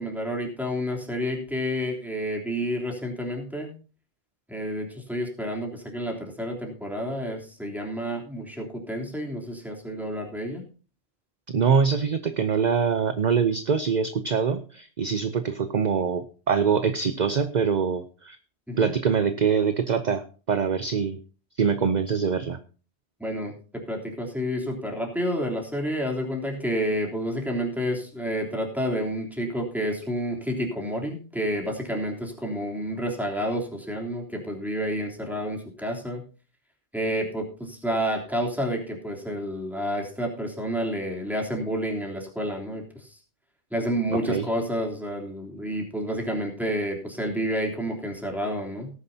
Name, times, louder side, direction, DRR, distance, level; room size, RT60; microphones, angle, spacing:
voice 1, 0.0-3.7 4.5-10.6 18.7-18.9 23.2-23.5 23.9-36.2 36.9-43.2 43.7-48.9, equal, ahead, 0 dB, 3.3 m, -29 dB
voice 2, 11.5-18.4 18.8-21.2 21.6-22.6 44.1-44.5, right 6 dB, 45° right, 10 dB, 0.8 m, -24 dB
18.0 x 9.7 x 2.8 m, 0.37 s
omnidirectional pair, 1.1 m